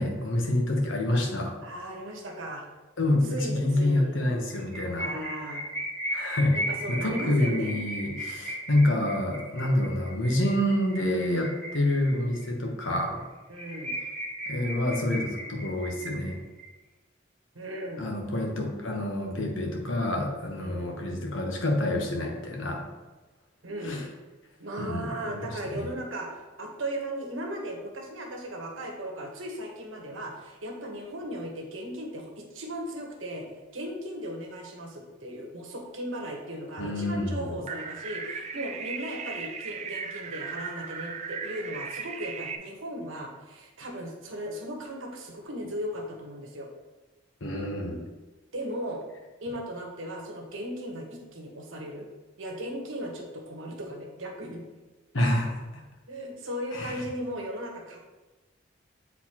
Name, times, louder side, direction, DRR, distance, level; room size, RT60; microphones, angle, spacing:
voice 1, 0.0-1.6 3.0-5.1 6.1-6.6 6.9-13.2 14.5-16.4 18.0-22.9 23.8-24.0 24.8-25.9 36.8-37.6 47.4-48.1 55.1-55.8 56.7-57.0, left 1 dB, 80° left, 1 dB, 1.1 m, -27 dB
voice 2, 1.6-2.7 3.3-4.2 5.0-5.6 6.5-7.8 13.5-14.0 17.5-18.1 20.6-20.9 23.6-24.0 24.6-33.5 33.7-46.7 48.5-49.0 49.4-52.1 52.4-54.6 56.1-58.0, equal, 85° right, 1 dB, 1.2 m, -37 dB
sound 1, 4.5-12.4 12.8-12.9 13.2-13.3 13.5-16.6, equal, 5° left, 1.2 m, -36 dB
sound 2, 37.7-42.6, right 6 dB, 35° right, 0.4 m, -37 dB
7.9 x 4.1 x 2.9 m, 1.2 s
head